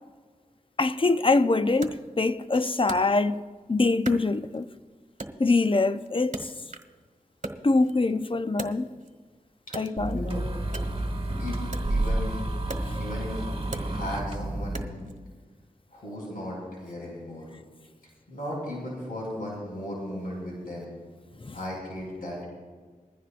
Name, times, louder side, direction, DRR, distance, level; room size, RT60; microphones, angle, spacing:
voice 1, 0.8-3.4 3.7-4.7 5.4-6.5 7.6-8.9 9.7-10.2 21.4-21.6, left 3 dB, 35° left, 0.7 m, -24 dB
Wood, 1.8-3.6 4.0-4.8 5.2-7.0 7.3-9.2 9.6-15.2, right 2 dB, 55° right, 1.4 m, -41 dB
sound 1, 10.0-14.8, right 1 dB, 40° right, 2.2 m, -30 dB
voice 2, 11.4-12.4 13.0-13.5 13.8-15.1 15.9-17.5 18.3-20.9 21.5-22.5, left 1 dB, 80° left, 5.1 m, -36 dB
21.0 x 14.5 x 2.6 m
cardioid pair, 45°, 15 cm